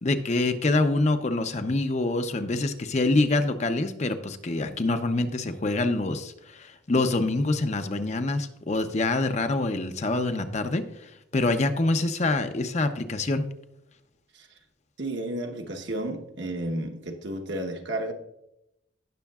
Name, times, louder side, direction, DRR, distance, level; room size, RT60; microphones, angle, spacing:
voice 1, 0.0-13.5, left 2 dB, 35° left, 0.6 m, -26 dB
voice 2, 15.0-18.1, right 1 dB, 60° right, 1.1 m, -32 dB
17.0 x 6.3 x 2.3 m
head